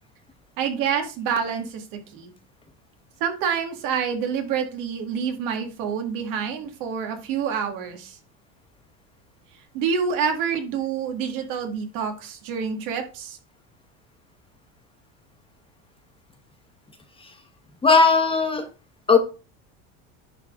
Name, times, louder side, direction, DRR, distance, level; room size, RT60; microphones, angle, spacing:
voice 1, 0.6-2.3 3.2-8.2 9.7-13.4, right 7 dB, 65° right, 5 dB, 2.1 m, -27 dB
voice 2, 17.8-18.7 19.1-19.2, left 4 dB, 15° left, 6 dB, 1.2 m, -17 dB
10.5 x 4.0 x 3.8 m, 0.33 s
supercardioid pair, 125°, 35 cm